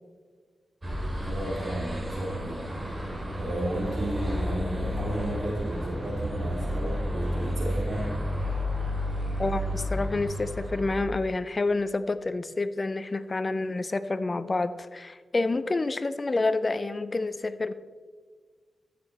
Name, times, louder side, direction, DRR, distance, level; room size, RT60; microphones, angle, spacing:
sound 1, 0.8-11.0, equal, 30° right, 2.8 m, -31 dB
voice 1, 1.2-2.7 3.3-8.1, right 1 dB, 60° right, -3 dB, 3.3 m, -33 dB
voice 2, 9.4-17.7, left 3 dB, 40° left, 12 dB, 0.4 m, -28 dB
14.0 x 6.7 x 4.2 m, 1.5 s
cardioid pair, 70°, 0 cm